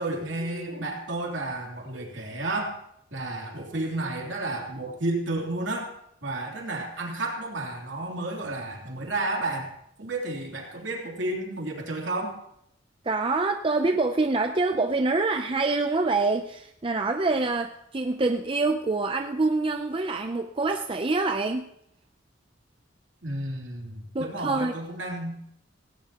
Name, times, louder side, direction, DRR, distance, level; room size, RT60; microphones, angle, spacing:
voice 1, 0.0-2.8 3.1-5.9 6.2-9.7 10.0-12.4 23.2-25.4, right 2 dB, 65° right, 0 dB, 3.2 m, -31 dB
voice 2, 13.0-21.7 24.1-24.8, right 3 dB, 25° right, 6 dB, 0.5 m, -26 dB
18.0 x 17.5 x 3.0 m, 0.74 s
head